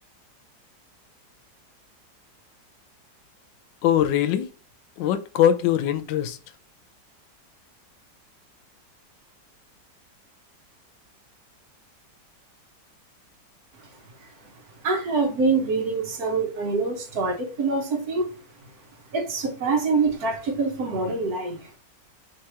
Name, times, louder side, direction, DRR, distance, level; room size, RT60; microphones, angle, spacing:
voice 1, 3.8-4.5 5.0-6.4, left 10 dB, 85° left, 1.3 m, -21 dB
voice 2, 14.2-14.5 14.8-18.3 19.1-21.8, right 4 dB, 65° right, 1.2 m, -25 dB
3.3 x 2.9 x 4.7 m
omnidirectional pair, 1.9 m